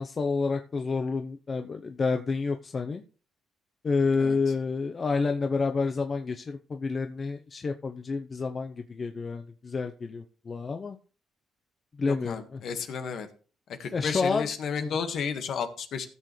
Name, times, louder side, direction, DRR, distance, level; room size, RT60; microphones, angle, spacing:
voice 1, 0.0-3.0 3.8-11.0 12.0-12.6 13.9-14.5 14.8-14.9, left 4 dB, 40° left, 6 dB, 0.7 m, -29 dB
voice 2, 12.1-13.3 13.8-16.1, left 6 dB, 70° left, 7 dB, 1.6 m, -32 dB
15.5 x 6.8 x 3.2 m, 0.38 s
cardioid pair, 90°, 0 cm